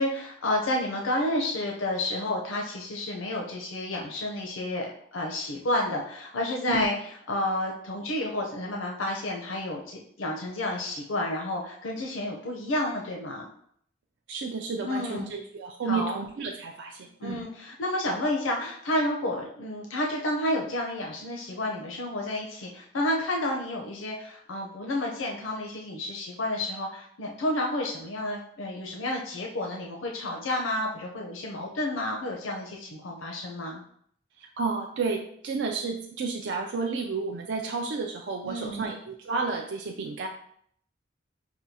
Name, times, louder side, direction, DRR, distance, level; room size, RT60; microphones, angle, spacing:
voice 1, 0.0-6.9 7.3-13.5 14.8-15.3 15.9-16.2 17.2-33.8 38.4-38.9, left 1 dB, 90° left, 0 dB, 0.6 m, -30 dB
voice 2, 14.3-17.4 34.4-40.3, right 4 dB, 65° right, 1 dB, 0.4 m, -31 dB
5.9 x 2.2 x 2.7 m, 0.65 s
head